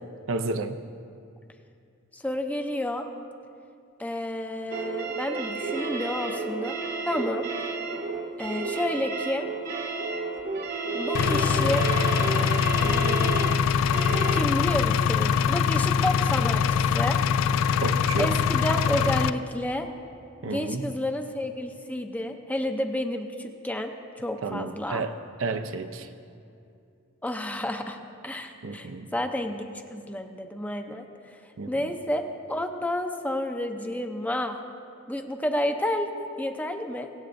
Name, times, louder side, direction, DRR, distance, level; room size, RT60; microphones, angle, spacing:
voice 1, 0.3-0.8 17.8-18.4 20.4-21.0 24.4-26.1 28.6-29.1 31.6-31.9, right 3 dB, 75° right, 8 dB, 0.6 m, -31 dB
voice 2, 2.1-3.1 4.0-6.8 7.1-7.5 8.4-9.5 10.9-11.8 12.8-13.4 14.3-17.2 18.2-19.9 20.4-25.0 27.2-28.0 28.2-29.6 29.9-31.1 31.7-34.6 35.1-37.1, left 1 dB, 10° left, 5 dB, 0.5 m, -30 dB
sound 1, 4.7-14.4, right 3 dB, 50° right, 0.9 m, -31 dB
Engine, 11.1-19.3, left 7 dB, 90° left, 0.3 m, -23 dB
23.5 x 8.4 x 2.6 m, 2.5 s
head